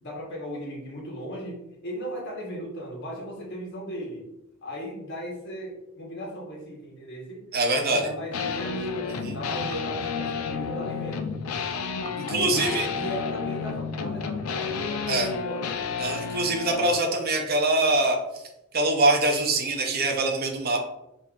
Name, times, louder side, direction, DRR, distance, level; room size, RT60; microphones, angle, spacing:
voice 1, 0.0-4.3 4.6-7.5 7.8-11.4 12.2-15.8, equal, 55° left, -2 dB, 1.1 m, -37 dB
voice 2, 7.5-8.1 9.2-9.4 12.2-12.9 15.1-15.3 16.0-18.2 18.7-20.8, right 2 dB, 45° right, 3 dB, 0.6 m, -24 dB
sound 1, 8.3-17.0, left 5 dB, 90° left, 0.4 m, -31 dB
5.3 x 2.5 x 2.3 m, 0.87 s
head